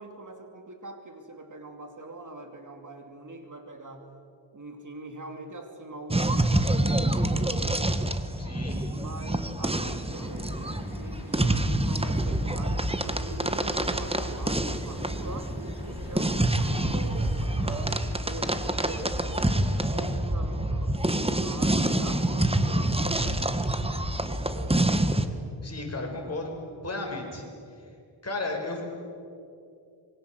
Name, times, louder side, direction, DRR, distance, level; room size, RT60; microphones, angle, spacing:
voice 1, 0.0-4.1 4.5-7.8 8.9-10.5 10.9-18.0 18.2-19.3 19.5-21.1 21.4-24.9, right 2 dB, 40° right, 5 dB, 2.8 m, -43 dB
sound 1, 6.1-25.3, right 1 dB, 10° right, 1.5 m, -27 dB
voice 2, 8.4-8.8 25.6-26.6 26.8-27.4 27.8-27.9 28.2-28.8, left 2 dB, 30° left, 1 dB, 6.1 m, -34 dB
sound 2, 10.1-19.8, left 3 dB, 55° left, 5.8 m, -47 dB
26.5 x 24.0 x 7.9 m, 2.5 s
wide cardioid pair, 100°, 46 cm